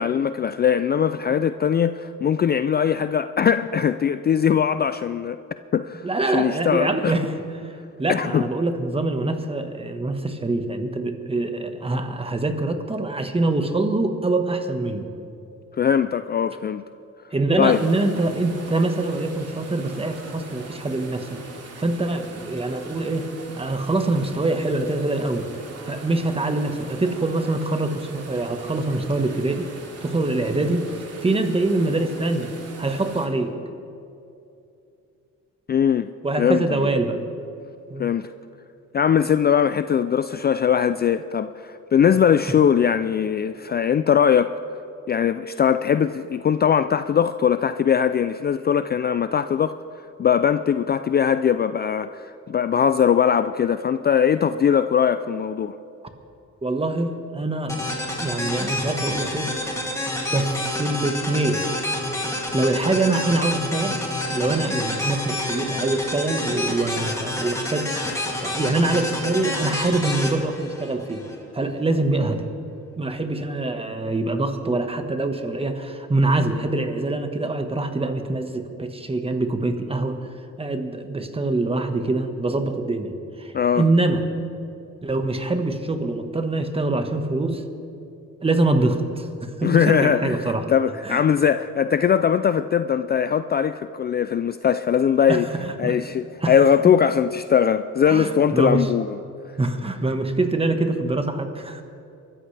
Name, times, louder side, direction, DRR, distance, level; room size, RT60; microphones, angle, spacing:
voice 1, 0.0-5.4 5.7-7.2 8.1-8.4 15.8-16.8 17.6-17.8 35.7-36.1 36.4-36.8 38.0-38.3 38.9-44.6 45.1-49.8 50.2-55.8 83.5-83.8 89.6-95.5 95.8-99.2, left 8 dB, 35° left, 12 dB, 0.4 m, -20 dB
voice 2, 6.0-7.3 8.0-15.1 17.3-21.4 21.8-23.3 23.5-25.5 25.8-29.7 30.0-30.9 31.2-32.5 32.8-33.5 36.2-37.2 37.9-38.1 56.6-59.5 60.3-61.6 62.5-64.0 64.3-67.9 68.4-71.2 71.5-72.4 73.0-80.2 80.6-83.1 83.4-84.2 85.0-87.6 88.4-90.7 91.0-91.2 95.3-96.0 96.4-96.9 98.1-98.9 99.6-101.8, right 2 dB, 20° right, 7 dB, 1.4 m, -24 dB
sound 1, 17.7-33.3, right 3 dB, 55° right, 2.8 m, -41 dB
sound 2, 57.7-71.3, left 1 dB, 10° left, 2.8 m, -28 dB
24.0 x 14.0 x 3.4 m, 2.7 s
cardioid pair, 90°, 30 cm